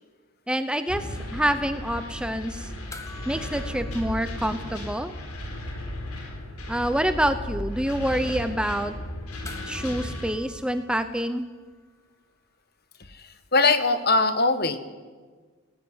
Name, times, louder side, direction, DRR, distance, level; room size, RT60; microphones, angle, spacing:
voice 1, 0.5-2.7 3.3-5.1 6.7-8.9 9.7-11.5, right 1 dB, 5° right, 9 dB, 0.8 m, -27 dB
sound 1, 0.9-10.3, left 1 dB, 85° left, 3.9 m, -35 dB
sound 2, 2.9-5.6 5.8-5.9 9.4-12.0 14.2-14.3, left 2 dB, 15° left, 1.2 m, -47 dB
voice 2, 13.1-14.8, left 3 dB, 45° left, 11 dB, 1.3 m, -22 dB
19.5 x 18.5 x 9.5 m, 1.5 s
head